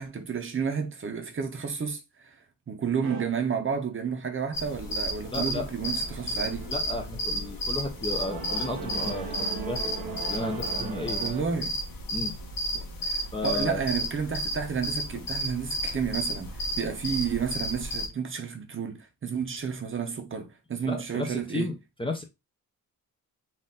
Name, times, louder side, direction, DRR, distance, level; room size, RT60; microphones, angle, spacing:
voice 1, 0.0-2.4 2.7-6.7 11.2-11.8 12.7-21.7, right 6 dB, 35° right, 0.7 m, -31 dB
sound 1, 3.0-3.2 4.4-11.4, right 5 dB, 90° right, 1.1 m, -39 dB
sound 2, 4.5-18.1, equal, 75° left, 1.1 m, -33 dB
voice 2, 5.3-5.7 6.7-11.2 12.1-12.4 13.3-13.8 20.8-22.2, left 2 dB, 15° left, 0.6 m, -33 dB
4.2 x 2.6 x 3.6 m
wide cardioid pair, 165°, 34 cm